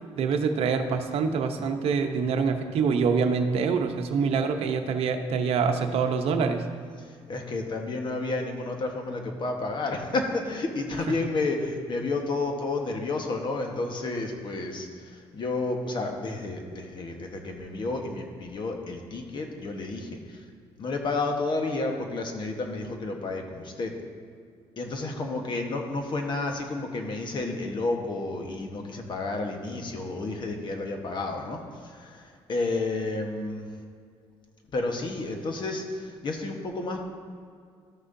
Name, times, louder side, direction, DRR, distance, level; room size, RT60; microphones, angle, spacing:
voice 1, 0.2-6.6, right 5 dB, 70° right, 6 dB, 0.8 m, -25 dB
voice 2, 7.0-20.4 20.8-23.9 24.8-33.7 34.7-37.0, left 3 dB, 45° left, 3 dB, 1.2 m, -31 dB
13.0 x 6.2 x 2.7 m, 2.2 s
cardioid pair, 95°, 11 cm